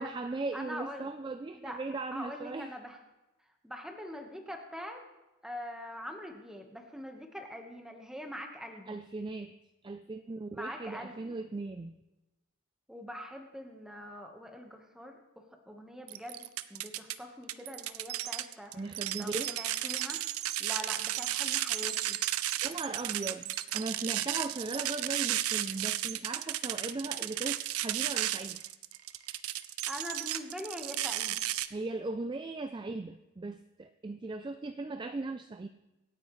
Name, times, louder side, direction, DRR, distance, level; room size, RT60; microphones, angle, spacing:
voice 1, 0.0-2.7 8.9-9.6 9.8-11.9 18.7-19.5 22.6-28.6 31.7-35.7, right 3 dB, 20° right, 9 dB, 0.3 m, -38 dB
voice 2, 0.5-1.1 1.6-1.8 2.1-3.0 3.6-5.0 5.4-9.0 10.5-11.4 12.9-16.4 16.7-20.2 20.6-22.2 29.9-31.4, equal, 5° right, 3 dB, 1.2 m, -43 dB
sound 1, 16.1-17.2 17.5-31.7, right 13 dB, 75° right, 0.5 m, -33 dB
25.5 x 9.1 x 3.2 m, 1.0 s
head